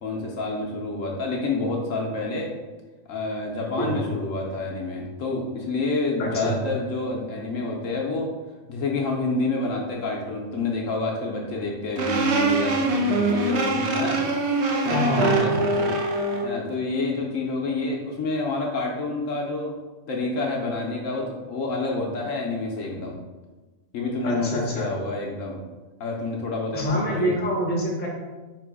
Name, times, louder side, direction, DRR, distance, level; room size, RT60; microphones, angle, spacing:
voice 1, 0.0-2.5 3.1-8.3 8.7-14.2 14.8-15.5 15.8-16.0 16.4-19.8 20.1-23.2 23.9-25.6 26.0-27.3, left 3 dB, 65° left, -1 dB, 1.0 m, -28 dB
voice 2, 6.2-6.5 14.9-15.7 24.2-24.9 26.7-28.1, equal, 10° left, -3 dB, 0.6 m, -26 dB
sound 1, 12.0-16.5, right 2 dB, 65° right, 0.7 m, -23 dB
3.8 x 2.9 x 4.7 m, 1.2 s
omnidirectional pair, 1.6 m